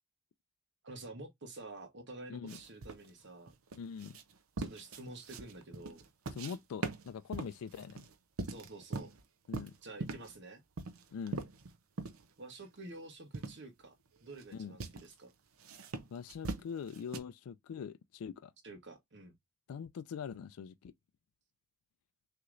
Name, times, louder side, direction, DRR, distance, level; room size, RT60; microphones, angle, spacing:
voice 1, 0.8-3.5 4.6-6.0 8.5-9.1 9.8-10.6 12.4-13.9 14.2-15.3 18.6-19.3, right 2 dB, 55° right, 1.1 m, -49 dB
sound 1, 2.5-6.6 6.8-9.2 9.5-10.3 10.8-12.2 12.6-12.7 13.3-13.6 14.2-14.5 14.8-15.1 15.6-17.2, right 3 dB, 80° right, 0.7 m, -41 dB
voice 2, 3.8-4.2 6.4-8.1 9.5-9.7 11.1-11.4 14.5-14.8 16.1-18.5 19.7-20.9, left 7 dB, 90° left, 0.3 m, -43 dB
6.0 x 2.9 x 2.5 m
head